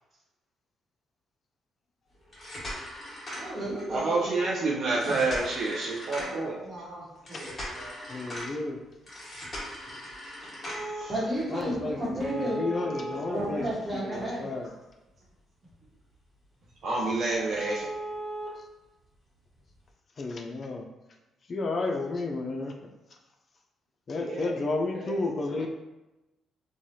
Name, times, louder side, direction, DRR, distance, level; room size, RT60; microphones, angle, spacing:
sound 1, 2.2-4.0 4.9-6.5 7.3-8.5 9.1-11.0 12.2-14.1 14.5-14.6 15.1-15.2 15.7-15.8 16.1-16.2 16.6-16.7 17.0-17.1 17.5-18.5 19.6-19.7, equal, 30° left, 1.3 m, -38 dB
voice 1, 3.3-4.5 5.0-5.2 11.1-12.6 13.3-14.4, right 1 dB, 20° right, -6 dB, 1.2 m, -32 dB
voice 2, 3.9-6.6 10.8-11.1 16.8-17.9, right 3 dB, 60° right, -4 dB, 0.5 m, -28 dB
voice 3, 6.2-8.0 9.9-10.0 12.8-14.6 24.1-25.3, right 1 dB, 40° right, -5 dB, 1.2 m, -43 dB
voice 4, 8.1-8.8 11.5-12.0 12.4-13.6 13.9-14.7 18.6-18.7 20.2-20.9 21.5-22.7 24.1-25.7, left 3 dB, 45° left, 3 dB, 0.3 m, -32 dB
3.0 x 2.3 x 2.7 m, 1.0 s
cardioid pair, 90°, 0 cm